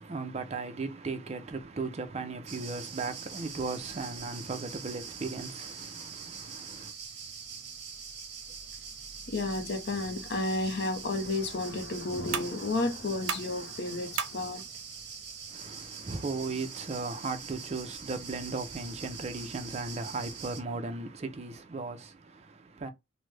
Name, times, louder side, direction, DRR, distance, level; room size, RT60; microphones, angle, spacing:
voice 1, 0.0-6.9 15.5-22.9, right 3 dB, 35° right, 0.5 m, -37 dB
sound 1, 2.5-20.6, right 6 dB, 55° right, 0.8 m, -44 dB
voice 2, 9.3-14.6, left 2 dB, 55° left, 0.6 m, -32 dB
sound 2, 12.3-17.8, right 7 dB, 90° right, 0.5 m, -42 dB
3.1 x 2.1 x 3.2 m
head